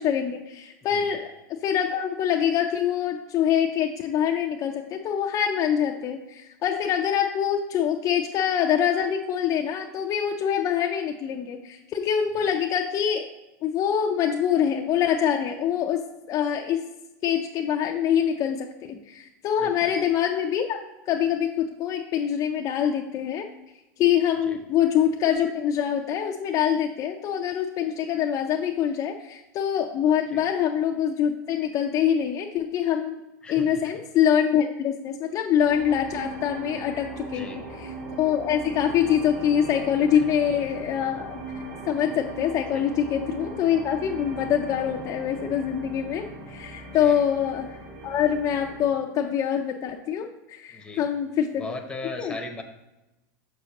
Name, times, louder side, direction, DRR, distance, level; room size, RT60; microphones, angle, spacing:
voice 1, 0.0-1.3 1.6-13.3 13.6-16.8 17.2-20.8 21.1-23.5 24.0-33.2 33.5-37.9 38.2-41.4 41.9-47.7 48.0-51.7 52.2-52.3, left 9 dB, 35° left, 3 dB, 0.5 m, -25 dB
voice 2, 19.6-19.9 24.5-24.6 30.3-30.4 33.4-33.7 37.3-37.7 40.2-40.3 42.7-42.9 47.0-47.2 50.7-51.0 51.6-52.6, left 2 dB, 10° left, 4 dB, 0.8 m, -38 dB
sound 1, 35.6-49.0, right 2 dB, 70° right, 2.1 m, -39 dB
6.5 x 6.1 x 2.9 m, 0.99 s
hypercardioid pair, 115°, 9 cm